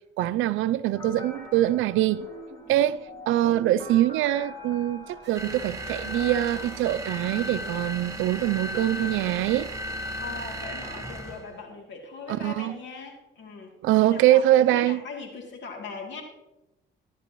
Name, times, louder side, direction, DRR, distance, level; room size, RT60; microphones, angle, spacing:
voice 1, 0.2-2.3 2.7-9.7 12.3-12.8 13.8-15.0, right 13 dB, 80° right, 0.4 m, -23 dB
sound 1, 0.9-7.1, left 1 dB, 20° left, 2.5 m, -44 dB
sound 2, 5.2-10.7, right 8 dB, 60° right, 1.2 m, -51 dB
sound 3, 5.3-11.5, equal, 15° right, 1.4 m, -35 dB
voice 2, 10.2-13.7 14.1-14.4 14.7-16.2, left 4 dB, 70° left, 2.7 m, -40 dB
16.0 x 10.0 x 3.0 m
cardioid pair, 90°, 20 cm